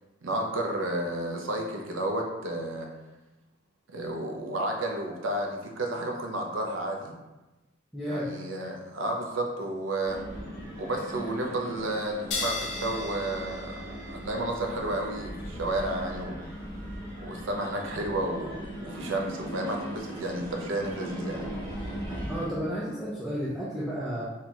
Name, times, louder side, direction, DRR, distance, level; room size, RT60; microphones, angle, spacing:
voice 1, 0.2-2.9 3.9-7.1 8.1-10.2 10.8-16.5 17.2-21.5, right 1 dB, 85° right, 2 dB, 0.6 m, -32 dB
voice 2, 7.9-8.3 22.3-24.2, equal, ahead, -10 dB, 0.4 m, -32 dB
sound 1, 10.0-22.5, equal, 30° right, 1.1 m, -39 dB
sound 2, 12.3-19.3, left 3 dB, 60° left, 0.5 m, -40 dB
4.3 x 2.3 x 2.8 m, 1.1 s
head